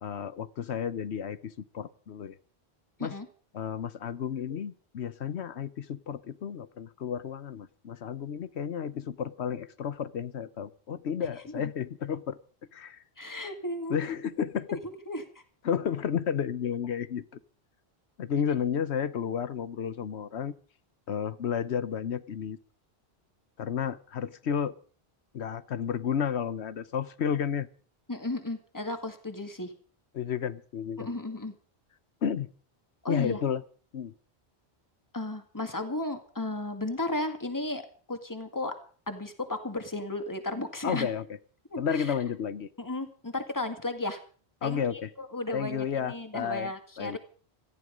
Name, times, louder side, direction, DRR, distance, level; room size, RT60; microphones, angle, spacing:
voice 1, 0.0-2.4 3.0-3.1 3.5-12.4 12.7-13.0 13.9-14.8 15.6-17.2 18.2-20.5 21.1-22.6 23.6-24.7 25.3-27.7 30.1-31.1 32.2-32.5 33.1-33.6 33.9-34.1 40.8-41.2 41.8-42.7 44.6-45.1 45.5-46.7 47.0-47.2, left 8 dB, 90° left, 15 dB, 1.2 m, -32 dB
voice 2, 13.2-14.0 14.7-15.2 28.1-29.7 31.0-31.5 33.0-33.4 35.1-38.7 39.1-41.1 41.7-42.1 42.8-44.2 44.6-44.8 45.2-47.2, left 2 dB, 15° left, 7 dB, 2.0 m, -34 dB
18.0 x 14.5 x 5.2 m, 0.42 s
omnidirectional pair, 1.1 m